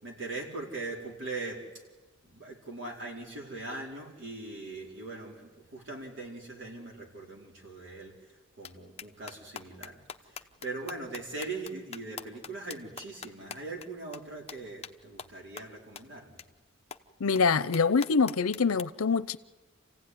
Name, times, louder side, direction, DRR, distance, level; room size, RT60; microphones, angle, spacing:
voice 1, 0.0-1.6 2.2-8.1 8.6-10.0 10.3-16.4, right 3 dB, 60° right, 4.6 m, -40 dB
sound 1, 8.6-8.7 9.0-13.9 14.1-14.2 14.5-14.6 14.8-14.9 15.2-15.3 15.6-15.7 16.0-16.1 16.4-16.5 16.9-17.0 17.4-17.5 17.7-18.8, left 7 dB, 30° left, 0.9 m, -42 dB
voice 2, 17.2-19.4, left 5 dB, 85° left, 0.7 m, -25 dB
28.0 x 16.0 x 9.7 m
head